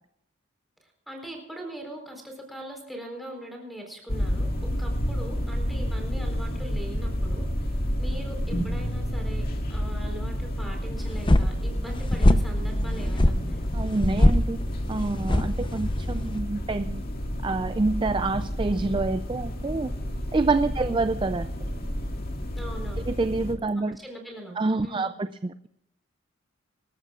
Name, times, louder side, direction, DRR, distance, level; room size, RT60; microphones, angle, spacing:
voice 1, 0.8-13.7 20.8-21.0 22.5-23.1 23.8-25.1, equal, ahead, 0 dB, 4.3 m, -41 dB
sound 1, 4.1-23.5, equal, 45° left, 2.0 m, -30 dB
sound 2, 11.0-16.4, left 1 dB, 25° left, 0.7 m, -23 dB
voice 2, 13.7-14.6 14.9-17.0 17.4-19.9 20.3-21.7 23.1-24.0 24.6-25.7, right 3 dB, 25° right, 11 dB, 0.4 m, -27 dB
25.5 x 13.5 x 2.4 m, 0.80 s
head